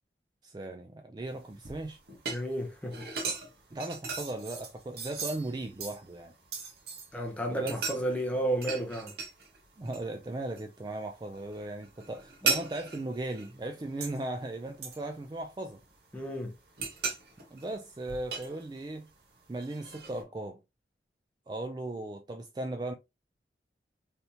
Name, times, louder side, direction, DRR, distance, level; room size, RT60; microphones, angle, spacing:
voice 1, 0.4-2.0 3.7-6.3 7.5-7.9 9.8-15.8 17.5-19.1 19.5-20.6 21.5-22.9, right 2 dB, 25° right, 0.3 m, -37 dB
sound 1, 1.3-7.2 7.6-9.6 9.9-10.6 11.0-14.3 14.8-16.0 16.4-19.1 19.5-20.2, right 5 dB, 65° right, 0.9 m, -37 dB
voice 2, 2.3-3.0 7.1-9.1 16.1-16.5, right 1 dB, 10° left, 0.6 m, -32 dB
3.4 x 2.7 x 2.7 m
head